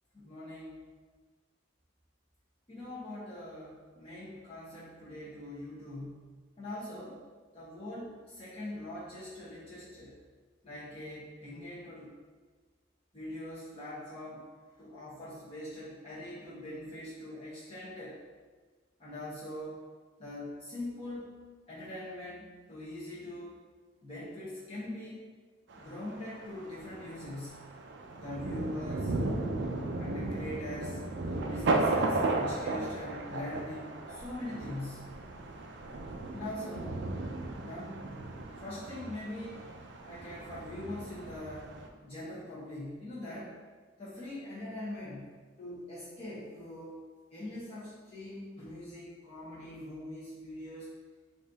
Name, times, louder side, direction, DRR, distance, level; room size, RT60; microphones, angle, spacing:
voice 1, 0.1-0.8 2.7-6.3 6.6-7.2 7.5-10.2 10.6-12.1 13.1-14.5 14.8-18.2 19.0-19.8 20.2-21.4 21.7-23.5 24.0-25.2 25.7-27.7 28.2-29.1 30.0-35.1 36.3-37.0 37.6-38.1 38.6-39.6 40.1-41.7 42.0-43.6 44.0-45.3 45.6-47.0 47.3-50.9, left 1 dB, 30° left, -11 dB, 1.0 m, -42 dB
Thunder, 25.7-41.9, right 2 dB, 60° right, 0.4 m, -35 dB
4.0 x 2.7 x 3.9 m, 1.5 s
head